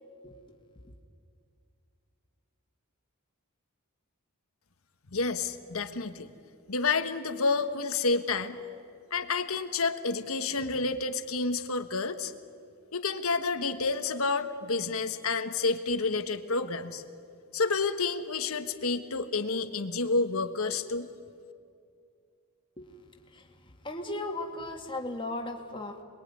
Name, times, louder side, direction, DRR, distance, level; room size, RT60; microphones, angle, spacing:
voice 1, 5.1-6.3 6.7-8.6 9.1-12.3 12.9-17.0 17.5-21.1, left 4 dB, 70° left, 8 dB, 1.5 m, -29 dB
voice 2, 23.8-26.0, left 2 dB, 25° left, 2 dB, 2.1 m, -36 dB
27.5 x 21.5 x 9.8 m, 2.4 s
head